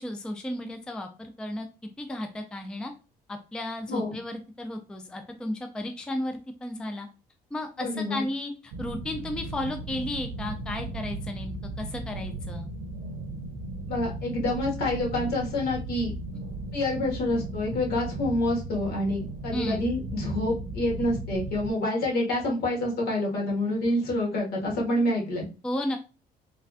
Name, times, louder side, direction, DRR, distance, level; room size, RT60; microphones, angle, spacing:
voice 1, 0.0-1.7 2.0-2.9 3.3-7.1 7.5-12.7 19.5-19.8 25.6-26.0, left 1 dB, 5° left, 5 dB, 0.3 m, -34 dB
voice 2, 7.8-8.2 13.9-16.1 16.7-25.5, left 1 dB, 65° left, -2 dB, 1.4 m, -27 dB
sound 1, 8.7-21.7, right 2 dB, 70° right, 0.6 m, -36 dB
3.2 x 2.4 x 2.4 m, 0.32 s
cardioid pair, 110°, 17 cm